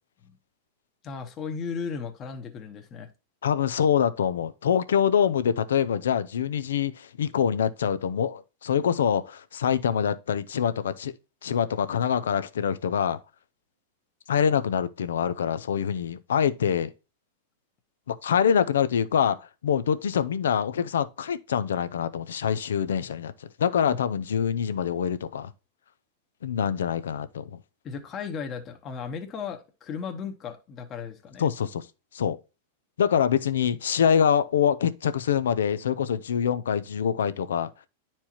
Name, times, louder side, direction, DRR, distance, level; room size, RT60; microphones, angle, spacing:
voice 1, 1.0-3.1 23.9-24.0 27.8-31.5, left 6 dB, 35° left, 1.1 m, -36 dB
voice 2, 3.4-11.1 11.4-13.2 14.3-16.9 18.1-25.5 26.4-27.6 31.4-31.9 32.1-32.4 33.0-37.7, left 8 dB, 85° left, 0.5 m, -25 dB
9.9 x 4.4 x 2.9 m
hypercardioid pair, 115°, 0 cm